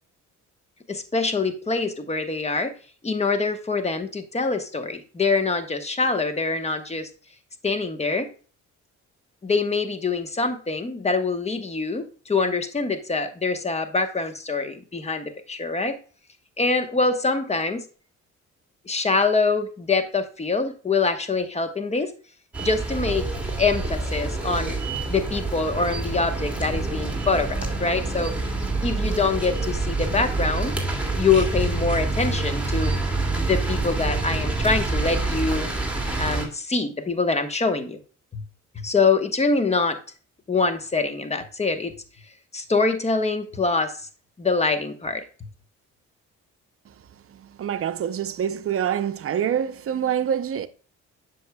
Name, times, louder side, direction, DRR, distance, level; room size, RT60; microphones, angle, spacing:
voice 1, 0.9-2.7 3.0-7.1 7.6-8.3 9.4-15.9 16.6-17.8 18.9-22.1 22.6-23.2 23.6-24.7 25.1-28.3 28.8-30.7 31.2-32.9 33.4-35.7 36.2-38.0 38.3-38.4 38.8-40.0 40.5-41.9 42.5-44.1 44.4-45.2, left 4 dB, 20° left, 1.1 m, -24 dB
sound 1, 22.5-36.5, right 3 dB, 5° right, 2.1 m, -27 dB
voice 2, 47.3-50.7, right 9 dB, 50° right, 0.6 m, -26 dB
7.7 x 6.3 x 2.2 m
cardioid pair, 90°, 30 cm